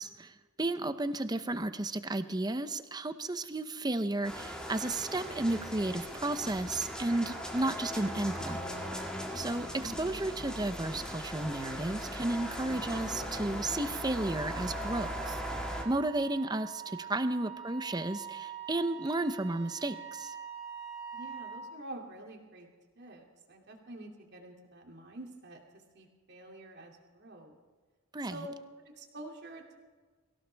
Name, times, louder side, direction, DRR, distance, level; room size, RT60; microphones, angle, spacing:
voice 1, 0.0-8.6 9.3-15.4 15.8-20.4 28.1-28.4, right 2 dB, 20° right, 11 dB, 0.7 m, -33 dB
sound 1, 4.2-15.8, equal, 5° left, 2.0 m, -39 dB
voice 2, 9.7-10.1 17.4-17.5 21.1-22.7 23.0-25.6 25.9-27.6 28.2-28.5 29.0-29.8, right 1 dB, 55° right, 1 dB, 2.7 m, -47 dB
Wind instrument woodwind instrument, 12.2-21.7, right 8 dB, 35° right, 3.2 m, -45 dB
23.5 x 16.5 x 3.5 m, 1.4 s
head